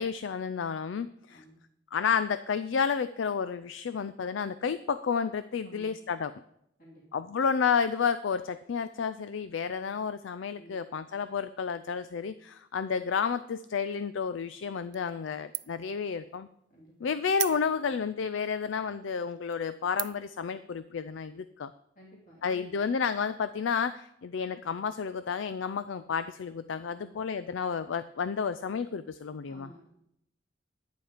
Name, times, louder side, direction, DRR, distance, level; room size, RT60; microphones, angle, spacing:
voice 1, 0.0-1.4 1.9-6.3 7.1-16.5 17.0-21.7 22.4-29.7, left 6 dB, 80° left, 13 dB, 0.4 m, -31 dB
voice 2, 1.3-1.6 5.6-6.0 6.8-7.0 10.5-11.0 16.7-16.9 21.9-22.8 26.9-27.2 29.5-29.9, right 1 dB, 45° left, -4 dB, 2.8 m, -53 dB
sound 1, 14.9-15.3 15.5-15.9 16.3-16.4 17.3-18.0 18.7-18.8 19.3-19.5 20.0-20.4, right 19 dB, 65° right, 0.3 m, -36 dB
11.5 x 9.3 x 5.0 m, 0.75 s
head